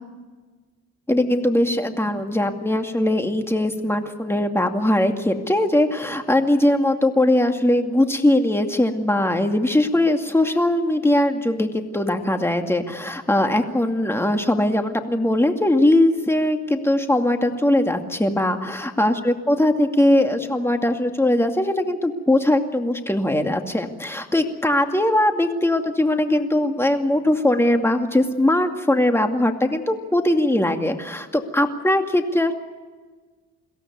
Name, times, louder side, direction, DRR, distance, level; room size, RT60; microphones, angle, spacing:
voice 1, 1.1-32.5, left 1 dB, 10° left, 5 dB, 2.4 m, -20 dB
23.0 x 17.0 x 9.4 m, 1.4 s
cardioid pair, 90°, 30 cm